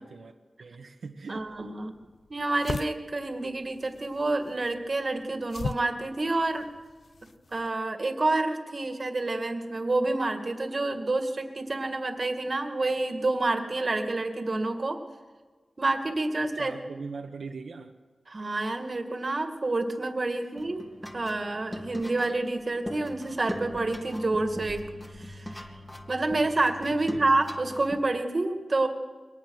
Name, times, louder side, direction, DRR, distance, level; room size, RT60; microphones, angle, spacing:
voice 1, 0.0-1.5 16.5-17.9 20.3-20.5 26.9-27.2, right 4 dB, 80° right, 2 dB, 1.4 m, -41 dB
sound 1, 1.3-7.7, left 4 dB, 65° left, 0.6 m, -40 dB
voice 2, 1.3-1.9 2.3-6.7 7.5-15.0 15.8-16.7 18.3-20.9 21.1-24.9 25.2-25.7 26.1-28.9, right 2 dB, 45° right, 6 dB, 2.1 m, -28 dB
sound 2, 20.5-28.0, left 1 dB, 15° left, 2.2 m, -41 dB
22.5 x 19.0 x 6.5 m, 1.4 s
wide cardioid pair, 80°, 0 cm